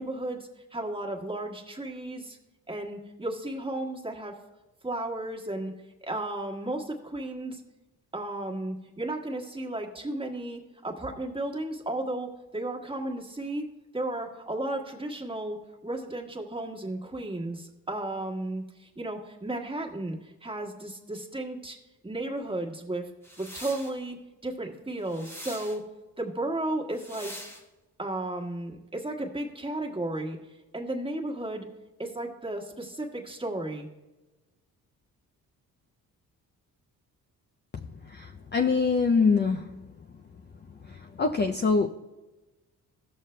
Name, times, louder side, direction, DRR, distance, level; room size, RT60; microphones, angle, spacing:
voice 1, 0.0-2.4 2.7-4.3 4.8-5.7 6.0-7.6 8.1-13.7 13.9-15.6 15.8-21.8 22.0-23.0 23.4-25.8 26.2-27.4 28.0-30.4 30.7-31.7 32.0-33.9, right 1 dB, 15° right, 1.5 m, -34 dB
sound 1, 23.2-23.9 25.0-25.8 26.9-27.6, equal, 5° left, 1.0 m, -43 dB
voice 2, 38.1-39.7 41.2-41.9, left 4 dB, 30° left, 0.5 m, -24 dB
17.0 x 6.5 x 2.2 m
cardioid pair, 100°, 36 cm